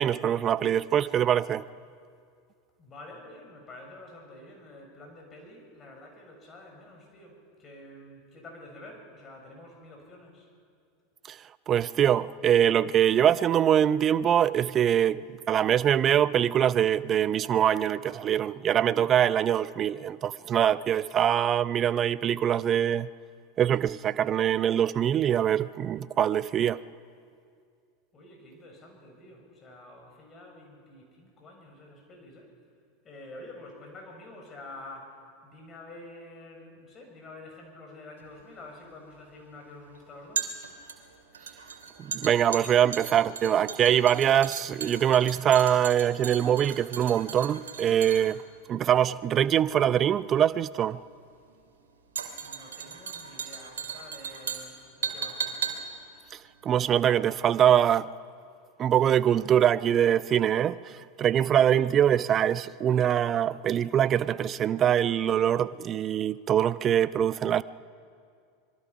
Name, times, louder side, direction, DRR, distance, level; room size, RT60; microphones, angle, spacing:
voice 1, 0.0-1.6 11.3-11.4 11.7-23.1 23.6-26.8 42.0-48.4 48.7-51.0 56.3-58.1 58.8-67.6, right 10 dB, 35° right, 0.6 m, -23 dB
voice 2, 2.8-10.5 28.1-32.5 33.0-40.5 52.4-55.5, left 2 dB, 30° left, 6.9 m, -48 dB
sound 1, 38.2-57.5 57.7-57.9, right 6 dB, 75° right, 2.6 m, -38 dB
25.5 x 22.5 x 5.9 m
figure-of-eight pair, 85°, 0 cm